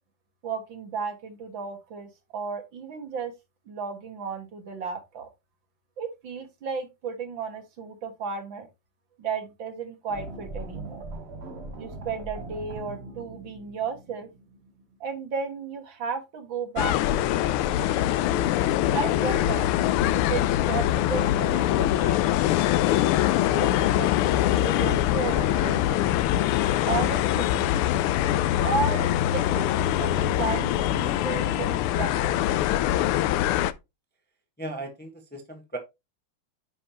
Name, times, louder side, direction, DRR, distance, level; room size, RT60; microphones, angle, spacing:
voice 1, 0.4-3.3 3.7-5.3 6.0-8.7 9.2-11.0 11.8-14.3 15.0-18.2 18.9-19.7 20.1-22.7 23.4-26.0 26.9-27.9 28.6-32.4, right 5 dB, 60° right, 2.2 m, -34 dB
sound 1, 10.1-15.1, right 2 dB, 40° right, 1.1 m, -40 dB
sound 2, 16.8-33.7, left 13 dB, 85° left, 1.5 m, -23 dB
voice 2, 18.3-18.6 34.6-35.8, right 1 dB, 5° left, 1.0 m, -37 dB
9.7 x 5.4 x 2.9 m
omnidirectional pair, 2.4 m